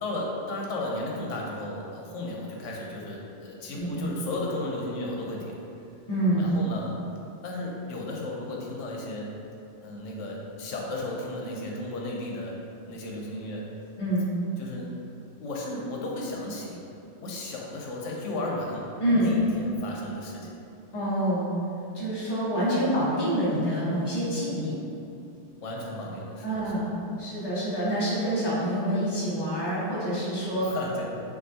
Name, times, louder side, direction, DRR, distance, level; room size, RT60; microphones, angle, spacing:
voice 1, 0.0-5.6 6.4-7.0 7.4-9.3 9.8-13.7 14.6-14.9 15.4-16.8 17.2-20.5 25.6-26.9 30.6-31.0, left 2 dB, 90° left, -2 dB, 1.1 m, -34 dB
voice 2, 6.1-6.6 14.0-14.2 19.0-19.4 20.9-21.5 21.9-24.8 26.4-26.9 27.2-30.7, right 1 dB, 20° left, -11 dB, 1.2 m, -26 dB
5.9 x 2.6 x 2.7 m, 2.6 s
omnidirectional pair, 1.2 m